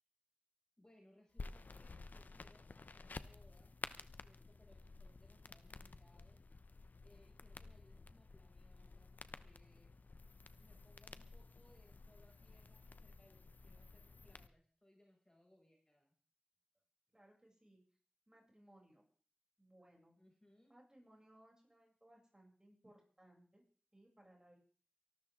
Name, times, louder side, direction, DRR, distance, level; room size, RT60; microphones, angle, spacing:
voice 1, 0.8-3.8 4.2-6.4 7.0-9.9 10.6-16.1 20.2-20.7, left 1 dB, 25° left, 0 dB, 6.7 m, -69 dB
sound 1, 1.4-14.5, left 3 dB, 75° left, 0.9 m, -53 dB
voice 2, 17.1-17.8 18.3-19.0 19.6-20.2 20.7-23.6 23.9-24.6, right 1 dB, 25° right, -1 dB, 7.8 m, -65 dB
24.0 x 13.0 x 3.8 m, 0.42 s
wide cardioid pair, 50°, 3 cm